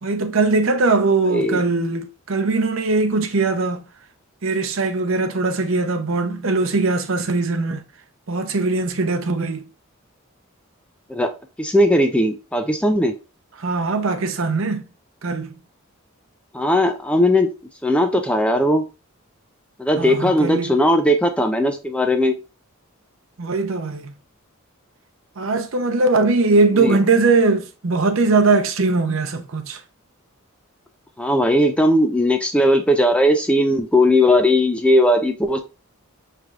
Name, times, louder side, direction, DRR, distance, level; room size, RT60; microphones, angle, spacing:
voice 1, 0.0-3.8 4.4-7.8 8.3-9.7 13.6-14.8 15.2-15.5 20.0-20.8 23.4-24.1 25.4-29.8, right 3 dB, 65° right, 0.7 m, -20 dB
voice 2, 1.3-1.6 11.1-11.3 11.6-13.1 16.5-17.5 17.8-18.8 19.8-22.4 26.7-27.0 31.2-35.6, left 1 dB, 5° left, 0.4 m, -18 dB
5.8 x 3.3 x 2.4 m
head